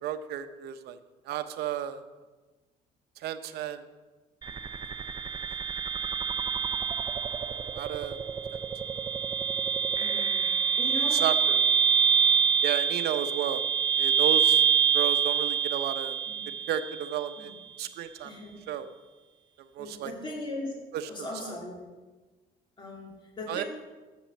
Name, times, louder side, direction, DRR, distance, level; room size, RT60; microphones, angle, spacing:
voice 1, 0.0-1.0 1.3-2.0 3.2-3.8 7.7-8.2 10.2-10.3 11.1-11.7 12.6-13.6 14.0-14.6 14.9-16.2 16.7-17.5 17.8-18.3 18.7-18.9 19.7-20.1 20.9-21.5 23.5-23.6, right 10 dB, 75° right, 9 dB, 0.7 m, -33 dB
sound 1, 4.4-17.4, right 6 dB, 25° right, 0.5 m, -26 dB
voice 2, 10.0-10.5 10.8-11.3 15.5-15.6 16.3-16.5 17.4-17.6 18.2-18.5 19.8-20.7 21.1-21.8 22.8-23.6, left 2 dB, 30° left, -3 dB, 2.9 m, -39 dB
7.5 x 6.1 x 7.3 m, 1.2 s
cardioid pair, 110°, 17 cm